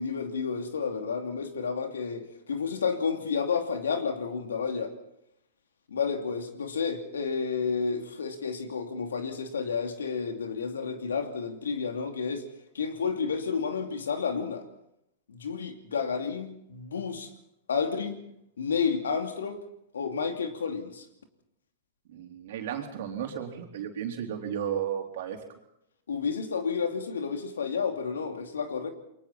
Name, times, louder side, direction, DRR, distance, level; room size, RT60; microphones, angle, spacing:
voice 1, 0.0-4.9 5.9-12.4 12.7-14.7 15.3-17.3 17.7-18.2 18.6-19.6 19.9-21.1 26.1-28.9, left 5 dB, 80° left, 6 dB, 2.7 m, -31 dB
voice 2, 22.1-25.4, right 9 dB, 65° right, 2 dB, 3.9 m, -34 dB
28.5 x 23.0 x 4.3 m, 0.80 s
hypercardioid pair, 105°, 0 cm